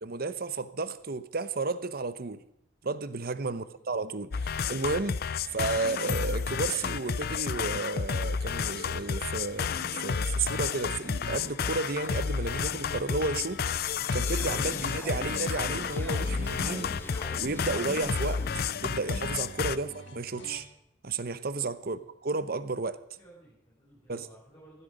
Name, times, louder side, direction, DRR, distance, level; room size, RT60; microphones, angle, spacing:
voice 1, 0.0-2.4 2.8-16.9 17.4-18.4 18.8-20.7 21.0-23.0 24.1-24.3, right 3 dB, 55° right, 0.9 m, -33 dB
voice 2, 3.5-4.0 5.4-5.6 21.8-22.1 23.1-24.8, right 1 dB, 30° left, 7.5 m, -57 dB
sound 1, 4.3-19.8, left 6 dB, 55° left, 0.5 m, -31 dB
sound 2, 10.6-20.6, left 1 dB, 90° left, 2.6 m, -46 dB
sound 3, 14.3-18.7, left 1 dB, 10° left, 1.1 m, -43 dB
15.0 x 12.5 x 5.3 m
head